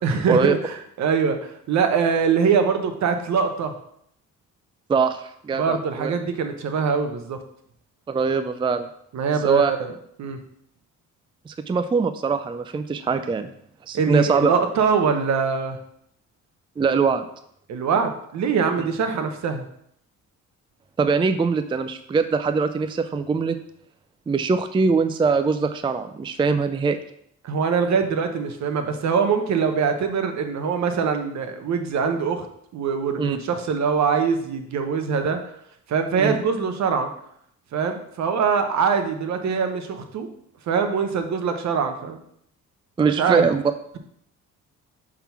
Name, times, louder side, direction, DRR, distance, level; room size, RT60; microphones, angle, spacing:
voice 1, 0.0-3.7 5.6-7.4 9.1-9.9 10.2-10.4 13.9-15.8 17.7-19.7 27.4-32.5 32.7-35.4 35.9-37.1 37.7-40.3 40.7-42.2 43.2-43.5, right 6 dB, 65° right, 7 dB, 1.0 m, -23 dB
voice 2, 4.9-6.1 8.1-8.9 9.4-9.7 11.5-13.5 13.9-14.5 16.8-17.2 21.0-23.6 24.3-27.0 33.2-33.4 36.2-36.4 43.0-43.6, right 5 dB, 15° right, 9 dB, 0.4 m, -22 dB
5.8 x 3.8 x 5.8 m, 0.70 s
cardioid pair, 90°, 30 cm